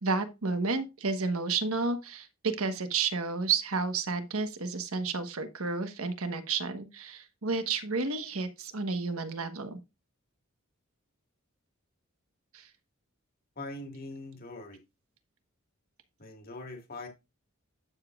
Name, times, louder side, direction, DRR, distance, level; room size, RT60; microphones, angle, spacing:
voice 1, 0.0-9.8 12.5-12.7, right 4 dB, 80° right, 1.3 m, -31 dB
voice 2, 13.6-14.8 16.2-17.1, left 2 dB, 45° left, 1.9 m, -42 dB
11.0 x 7.0 x 2.4 m
head